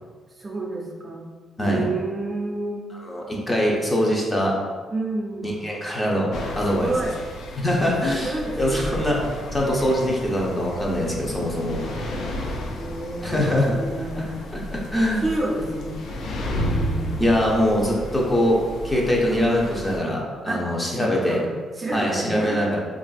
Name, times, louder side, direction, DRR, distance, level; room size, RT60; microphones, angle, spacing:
voice 1, 0.3-1.3 1.6-2.9 4.9-5.6 6.6-7.2 8.1-9.1 11.8-14.7 15.2-16.0 16.5-17.4 20.5-22.6, right 2 dB, 30° right, -2 dB, 0.5 m, -30 dB
voice 2, 3.1-4.5 5.4-6.9 7.6-9.2 9.5-11.8 13.2-13.7 14.2-14.3 14.5-15.2 17.2-18.6 18.8-21.4 21.9-22.8, equal, 20° left, -3 dB, 0.6 m, -23 dB
sound 1, 6.3-20.0, equal, 65° left, 0.3 m, -32 dB
2.9 x 2.4 x 2.3 m, 1.5 s
cardioid pair, 90°, 0 cm